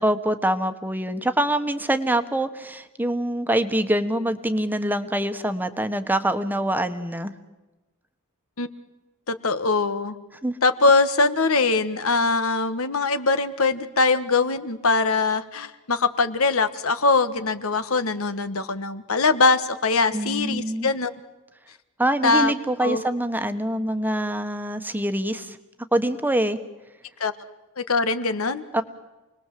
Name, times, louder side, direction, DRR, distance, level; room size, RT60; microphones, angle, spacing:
voice 1, 0.0-7.3 10.4-10.5 20.1-20.9 22.0-25.6 25.9-26.6 28.7-28.8, right 1 dB, 10° right, 9 dB, 1.4 m, -24 dB
voice 2, 9.3-10.2 10.6-21.1 22.2-22.5 22.8-23.0 27.2-27.3 27.8-28.7, left 3 dB, 75° left, 11 dB, 1.5 m, -22 dB
29.0 x 20.5 x 7.7 m, 1.1 s
head